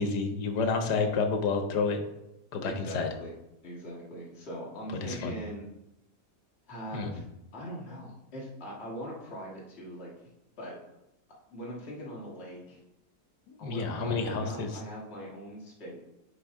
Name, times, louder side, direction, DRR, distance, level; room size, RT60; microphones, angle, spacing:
voice 1, 0.0-2.0 2.5-3.1 5.0-5.4 6.9-7.1 13.5-14.7, left 4 dB, 85° left, 6 dB, 1.4 m, -29 dB
voice 2, 2.6-3.4 3.6-5.7 6.7-7.2 7.5-10.1 10.6-10.8 11.5-12.8 13.6-16.0, equal, 40° left, -4 dB, 1.7 m, -41 dB
9.4 x 3.5 x 3.6 m, 0.87 s
omnidirectional pair, 1.8 m